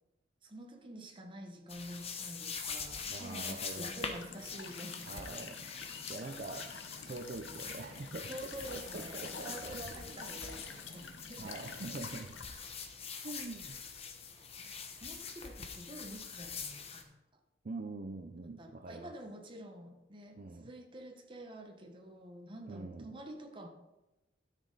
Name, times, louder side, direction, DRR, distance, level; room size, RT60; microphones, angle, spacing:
voice 1, 0.4-5.3 6.4-6.5 8.3-11.6 13.2-13.3 14.3-14.7 15.0-17.1 18.6-23.7, right 1 dB, 25° right, 3 dB, 1.0 m, -48 dB
sound 1, 1.7-17.0, left 5 dB, 35° left, 0.9 m, -44 dB
voice 2, 3.1-4.0 5.0-5.7 6.1-6.7 7.1-8.5 8.9-9.8 10.1-10.2 11.4-12.4 13.2-13.8 17.6-19.1 20.4-20.7 22.7-23.1, right 3 dB, 45° right, 4 dB, 0.5 m, -44 dB
Walk footsteps / Chirp tweet / Stream, 3.9-12.4, left 5 dB, 75° left, 0.9 m, -49 dB
sound 2, 7.3-13.0, equal, 10° left, 3.8 m, -64 dB
12.5 x 6.4 x 3.9 m, 1.0 s
head